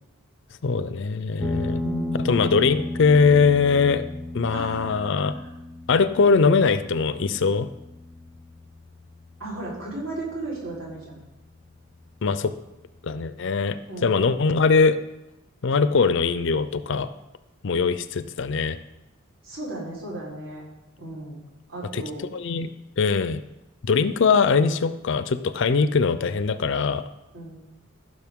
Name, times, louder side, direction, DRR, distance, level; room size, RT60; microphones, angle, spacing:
voice 1, 0.6-1.8 2.2-4.1 4.3-5.3 5.9-7.7 12.2-12.5 13.0-13.8 14.0-15.0 15.6-17.1 17.6-18.8 21.9-22.0 22.3-22.7 23.0-23.4 23.8-27.0, left 5 dB, 60° left, 13 dB, 0.5 m, -21 dB
sound 1, 1.4-10.4, left 2 dB, 5° left, 0.6 m, -34 dB
voice 2, 1.8-2.4 4.5-5.5 9.4-11.2 13.9-14.2 19.4-20.6 21.0-21.4 21.7-22.3 27.3-27.6, right 2 dB, 65° right, -6 dB, 4.0 m, -35 dB
15.0 x 6.4 x 3.6 m, 0.97 s
head